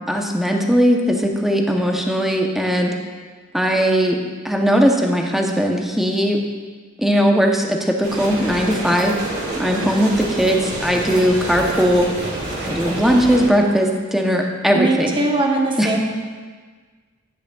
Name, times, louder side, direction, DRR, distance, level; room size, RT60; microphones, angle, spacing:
voice 1, 0.1-2.9 3.5-4.2 4.4-6.4 7.0-9.1 9.6-12.1 12.6-15.2 15.8-15.9, equal, ahead, 1 dB, 0.7 m, -18 dB
sound 1, 8.0-13.5, right 1 dB, 55° right, 2.1 m, -28 dB
voice 2, 14.7-16.0, right 2 dB, 25° right, 0 dB, 1.0 m, -20 dB
10.5 x 9.4 x 2.3 m, 1.5 s
head